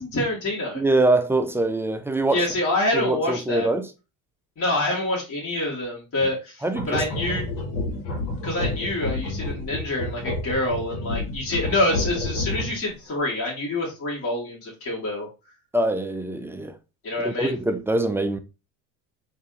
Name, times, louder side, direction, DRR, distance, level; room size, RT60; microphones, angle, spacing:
voice 1, 0.0-0.8 2.3-3.7 4.6-7.5 8.4-15.3 17.0-17.5, left 1 dB, 40° left, 2.1 m, -26 dB
voice 2, 0.7-2.5 2.9-3.9 6.2-6.3 6.6-7.0 15.7-16.8 17.2-18.4, right 2 dB, 5° right, 0.4 m, -23 dB
sound 1, 6.7-12.9, left 2 dB, 85° left, 1.4 m, -29 dB
3.9 x 2.7 x 3.7 m
supercardioid pair, 95°, 36 cm